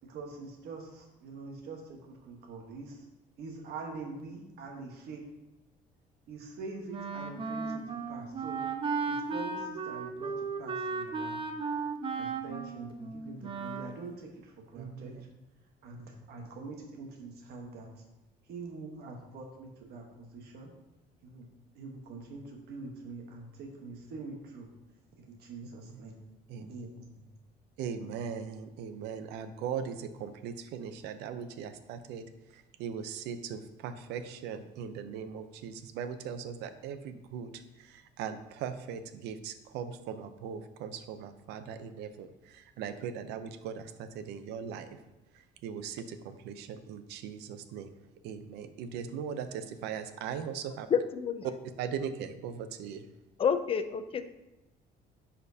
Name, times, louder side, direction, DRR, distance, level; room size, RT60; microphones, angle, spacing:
voice 1, 0.0-3.0 3.4-5.2 6.3-8.6 9.1-11.4 12.1-15.3 15.8-18.0 18.5-20.7 21.2-21.5 21.7-24.7 25.2-26.2 26.6-27.0, right 3 dB, 70° right, 2 dB, 1.1 m, -44 dB
Wind instrument woodwind instrument, 6.9-14.0, right 4 dB, 30° right, 0.6 m, -35 dB
voice 2, 14.8-15.2 26.5-26.7 27.8-32.2 32.8-37.5 38.2-42.3 42.5-44.9 45.6-47.9 48.2-50.9 51.8-53.0, right 7 dB, 90° right, 10 dB, 0.6 m, -39 dB
voice 3, 50.9-51.4 53.4-54.3, left 7 dB, 35° left, 10 dB, 0.5 m, -29 dB
10.5 x 4.3 x 2.7 m, 0.98 s
cardioid pair, 110°, 17 cm